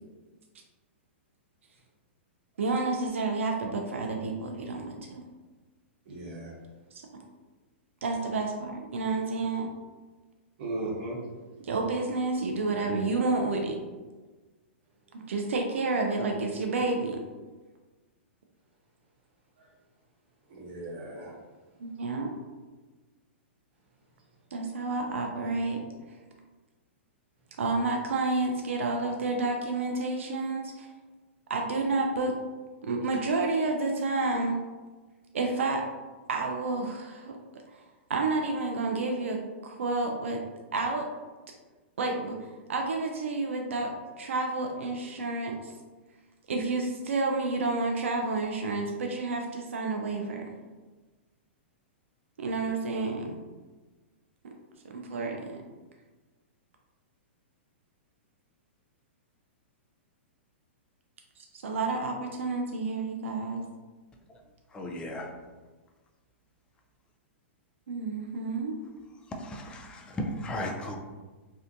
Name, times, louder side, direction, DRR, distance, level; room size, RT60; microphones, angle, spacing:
voice 1, 2.6-5.2 8.0-9.7 11.7-13.8 15.1-17.2 21.8-22.3 24.5-25.8 27.6-30.9 31.5-32.3 32.8-34.6 35.3-35.9 36.3-37.4 38.1-39.4 39.6-40.4 40.7-41.1 42.0-42.4 42.7-45.7 46.5-50.4 52.4-53.4 54.4-54.5 54.9-55.6 61.5-63.6 67.9-68.8, right 3 dB, 85° right, 2 dB, 0.3 m, -30 dB
voice 2, 6.0-6.5 10.6-11.2 19.6-19.7 20.5-21.3 21.9-22.1, right 2 dB, 55° right, -3 dB, 0.9 m, -37 dB
voice 3, 64.7-65.3 69.3-71.0, left 1 dB, 15° left, 2 dB, 0.3 m, -35 dB
2.6 x 2.1 x 2.5 m, 1.3 s
hypercardioid pair, 130°, 7 cm